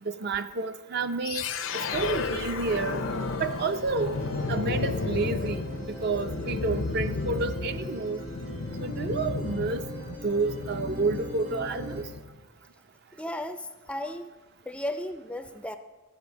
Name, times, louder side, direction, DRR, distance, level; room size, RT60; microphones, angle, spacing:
voice 1, 0.0-1.5 1.7-3.0 3.4-4.2 4.5-8.2 8.8-9.8 10.1-12.1, right 3 dB, 55° right, 9 dB, 0.5 m, -30 dB
sound 1, 1.2-12.3, left 4 dB, 75° left, 0.6 m, -33 dB
sound 2, 1.9-12.0, equal, 85° right, 2.5 m, -40 dB
voice 2, 13.2-14.3 14.7-15.8, left 1 dB, 5° left, 9 dB, 0.4 m, -35 dB
12.0 x 5.4 x 7.1 m, 1.2 s
head